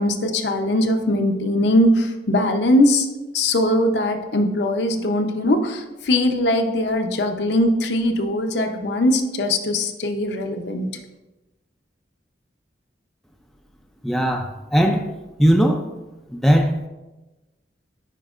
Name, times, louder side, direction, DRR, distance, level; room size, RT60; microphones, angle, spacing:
voice 1, 0.0-3.1 3.3-10.9, left 1 dB, 70° left, 5 dB, 0.6 m, -20 dB
voice 2, 14.0-15.0 15.4-15.8 16.3-16.7, equal, ahead, 3 dB, 0.4 m, -18 dB
10.0 x 4.5 x 2.4 m, 1.1 s
head